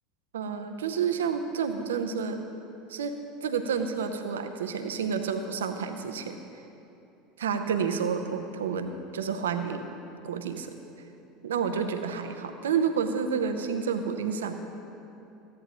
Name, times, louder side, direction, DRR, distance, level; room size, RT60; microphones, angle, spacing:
voice 1, 0.3-2.4 2.9-6.4 7.4-10.0 10.2-10.8 11.4-14.5, right 6 dB, 70° right, 8 dB, 0.6 m, -30 dB
14.5 x 10.5 x 3.0 m, 2.8 s
figure-of-eight pair, 70°, 0 cm